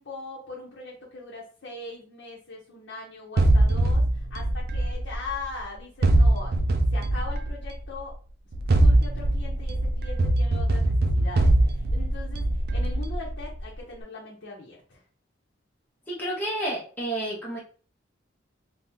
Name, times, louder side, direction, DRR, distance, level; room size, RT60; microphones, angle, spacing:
voice 1, 0.0-8.2 8.7-15.0, left 3 dB, 80° left, -5 dB, 0.9 m, -40 dB
sound 1, 3.4-5.5 6.0-7.8 8.5-13.6, right 1 dB, 55° right, 0.4 m, -22 dB
voice 2, 16.1-17.6, right 1 dB, 10° left, -6 dB, 1.0 m, -30 dB
3.5 x 2.4 x 2.9 m, 0.39 s
head